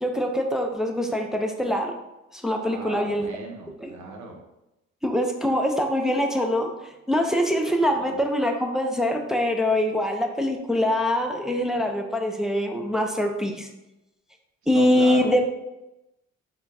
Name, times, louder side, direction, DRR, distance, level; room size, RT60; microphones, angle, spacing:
voice 1, 0.0-1.9 2.3-3.3 3.8-3.9 5.0-6.7 7.1-13.7 14.7-15.5, left 1 dB, ahead, 2 dB, 0.5 m, -24 dB
voice 2, 2.7-4.4 7.9-8.2 14.7-15.4, right 3 dB, 70° right, 2 dB, 0.9 m, -36 dB
4.3 x 3.5 x 2.7 m, 0.94 s
cardioid pair, 90°, 30 cm